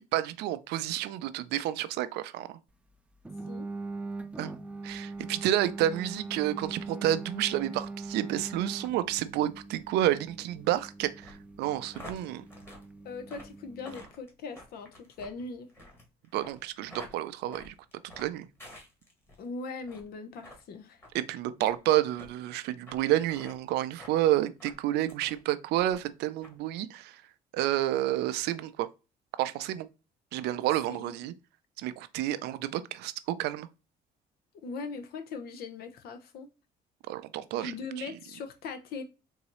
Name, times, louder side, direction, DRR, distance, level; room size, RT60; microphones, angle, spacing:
voice 1, 0.1-2.5 4.4-4.5 4.8-12.4 16.3-17.7 18.2-18.5 21.1-27.2 27.5-28.9 29.4-29.9 30.3-31.3 31.8-33.7 37.1-37.7, right 13 dB, 85° right, 0.4 m, -30 dB
sound 1, 3.3-14.1, right 3 dB, 5° right, 0.3 m, -42 dB
sound 2, 11.2-19.4 19.8-20.1 20.4-20.6 21.0-21.1 21.6-21.8 22.2-22.3 22.9-23.0 23.2-23.6 24.0-24.2 24.6-25.4 25.7-26.1 26.4-26.5, left 1 dB, 15° left, 1.4 m, -49 dB
voice 2, 13.0-15.7 19.4-21.0 30.9-31.1 34.6-36.5 37.6-39.0, left 4 dB, 65° left, 0.8 m, -40 dB
3.9 x 2.7 x 3.0 m
cardioid pair, 110°, 17 cm